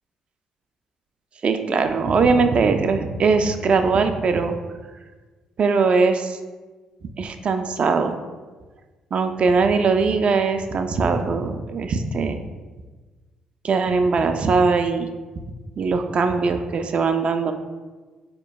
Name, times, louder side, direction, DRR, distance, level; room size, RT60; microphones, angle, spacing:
voice 1, 1.4-4.5 5.6-6.4 7.2-8.2 9.1-12.4 13.6-15.1 15.8-17.5, right 4 dB, 50° right, 7 dB, 0.3 m, -20 dB
4.4 x 2.9 x 2.3 m, 1.3 s
hypercardioid pair, 45°, 2 cm